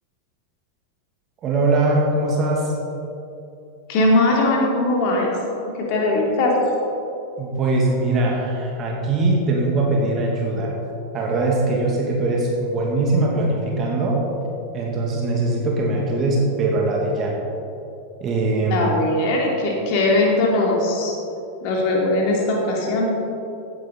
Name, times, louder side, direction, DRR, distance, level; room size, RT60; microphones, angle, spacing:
voice 1, 1.4-2.7 7.4-10.7 11.1-14.2 14.7-17.4 18.2-18.9, right 2 dB, 30° right, -2 dB, 2.1 m, -21 dB
voice 2, 3.9-5.3 5.7-6.5 18.7-21.1 21.6-23.2, left 2 dB, 45° left, -1 dB, 2.7 m, -20 dB
16.5 x 9.7 x 3.9 m, 2.9 s
figure-of-eight pair, 90°, 0 cm